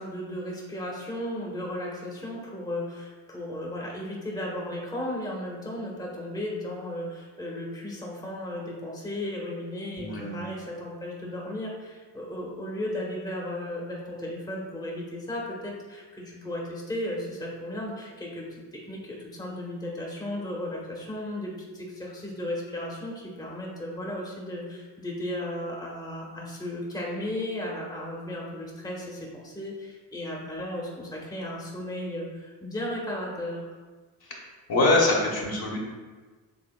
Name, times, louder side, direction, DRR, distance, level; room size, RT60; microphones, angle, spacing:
voice 1, 0.0-33.7, left 1 dB, 10° left, -3 dB, 1.2 m, -35 dB
voice 2, 10.0-10.4 34.2-34.4 34.7-35.8, left 2 dB, 50° left, -3 dB, 1.4 m, -24 dB
7.0 x 3.4 x 2.3 m, 1.4 s
hypercardioid pair, 45°, 48 cm